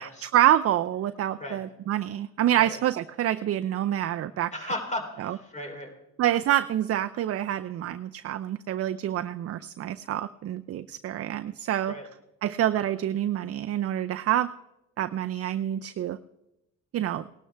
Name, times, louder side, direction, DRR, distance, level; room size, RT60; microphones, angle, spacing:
voice 1, 0.0-4.5 5.2-5.4 6.2-11.9 12.4-14.5 15.0-16.2 16.9-17.3, right 12 dB, 50° right, 10 dB, 0.5 m, -27 dB
voice 2, 4.5-5.9 11.9-12.1, left 1 dB, 25° left, 2 dB, 3.4 m, -35 dB
18.5 x 12.0 x 3.4 m, 0.91 s
cardioid pair, 90°, 30 cm